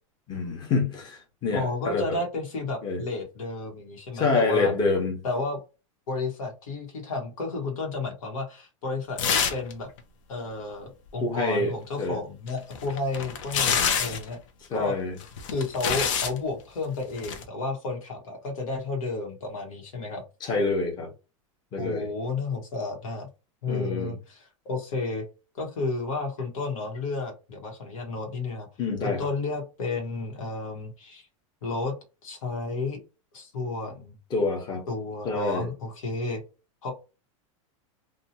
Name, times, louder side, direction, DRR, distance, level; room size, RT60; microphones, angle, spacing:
voice 1, 0.3-2.2 2.8-3.0 4.1-5.2 11.2-12.2 14.7-15.1 20.4-21.1 21.7-22.1 23.7-24.1 28.8-29.3 34.3-34.8 35.2-35.7, left 3 dB, 25° left, 1.0 m, -27 dB
voice 2, 1.5-4.7 5.2-5.6 6.1-9.9 10.3-14.4 14.7-15.0 15.5-20.2 21.8-23.3 23.6-25.3 25.5-28.7 29.0-31.3 31.6-31.9 32.2-33.0 33.3-34.2 34.9-36.4 36.8-36.9, left 3 dB, 90° left, 1.2 m, -32 dB
sound 1, 9.2-9.7 10.0-10.1 12.5-14.3 15.2-16.4 17.2-17.4, left 7 dB, 65° left, 0.7 m, -26 dB
2.7 x 2.3 x 2.8 m
supercardioid pair, 145°, 17 cm